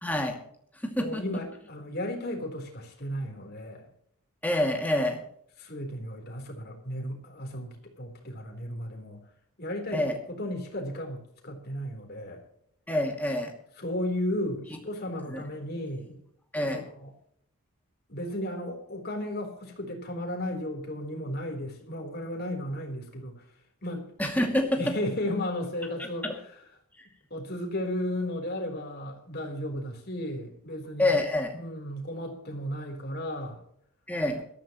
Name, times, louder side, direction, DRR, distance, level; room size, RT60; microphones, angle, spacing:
voice 1, 0.0-0.4 0.8-1.2 4.4-5.2 9.9-10.2 12.9-13.5 15.3-15.4 16.5-16.8 24.2-24.8 26.0-26.4 31.0-31.6 34.1-34.4, left 1 dB, 5° left, 2 dB, 2.4 m, -27 dB
voice 2, 1.0-3.9 5.6-9.2 9.6-12.4 13.8-16.2 16.7-17.1 18.1-23.3 23.8-24.1 24.8-26.3 27.3-31.2 31.5-33.6, left 1 dB, 45° left, 2 dB, 3.9 m, -34 dB
21.0 x 14.0 x 3.1 m, 0.67 s
head